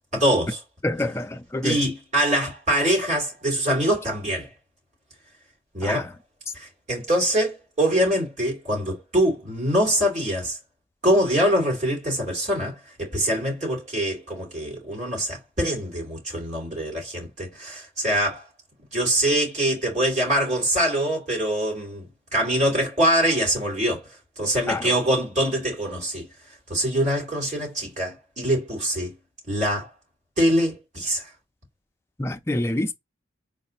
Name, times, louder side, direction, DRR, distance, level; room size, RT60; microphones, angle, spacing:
voice 1, 0.1-0.6 1.6-4.5 5.7-6.1 6.5-10.6 11.0-18.5 18.9-22.1 22.3-24.0 24.4-26.3 26.7-29.1 29.5-29.9 30.4-31.3, equal, 35° right, 2.7 m, -24 dB
voice 2, 0.8-1.8 5.8-6.0 24.7-24.9 32.2-32.9, left 1 dB, 15° left, 0.4 m, -26 dB
4.0 x 2.5 x 4.0 m
head